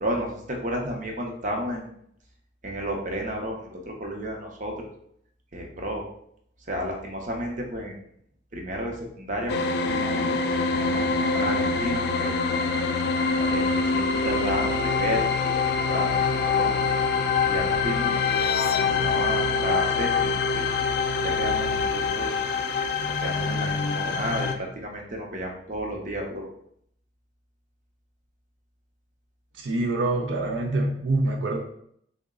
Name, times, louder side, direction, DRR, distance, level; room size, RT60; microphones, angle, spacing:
voice 1, 0.0-1.9 2.6-4.9 5.5-6.0 6.7-8.0 8.5-12.4 12.7-13.0 13.4-15.6 15.8-16.7 17.4-18.3 18.8-20.7 21.2-22.5 23.2-26.4, equal, 45° right, 1 dB, 0.7 m, -32 dB
sound 1, 9.5-24.5, left 4 dB, 60° left, 0.3 m, -25 dB
voice 2, 29.6-31.6, right 2 dB, 80° right, 1 dB, 0.5 m, -25 dB
3.7 x 2.1 x 3.6 m, 0.70 s
head